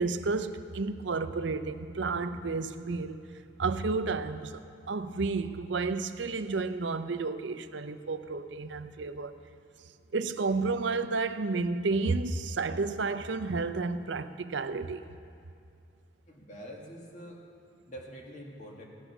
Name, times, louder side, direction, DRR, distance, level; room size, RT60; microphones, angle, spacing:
voice 1, 0.0-3.3 3.6-4.6 4.9-9.3 10.1-15.1, right 3 dB, 70° right, 0.6 m, -31 dB
voice 2, 16.3-17.4 17.9-18.8, equal, 40° left, 2.0 m, -45 dB
16.5 x 10.0 x 6.0 m
head